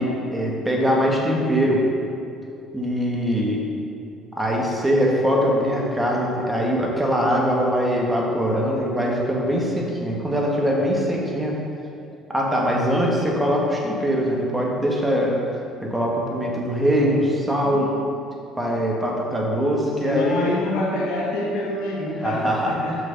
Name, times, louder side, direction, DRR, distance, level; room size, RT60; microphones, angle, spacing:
voice 1, 0.0-1.8 2.7-3.6 4.4-11.6 12.3-15.4 15.8-17.9 18.6-20.6 22.2-22.8, equal, 10° right, -2 dB, 1.6 m, -22 dB
voice 2, 17.4-17.9 20.0-23.0, left 1 dB, 75° left, -3 dB, 1.7 m, -27 dB
5.9 x 5.8 x 5.4 m, 2.6 s
supercardioid pair, 80°, 0 cm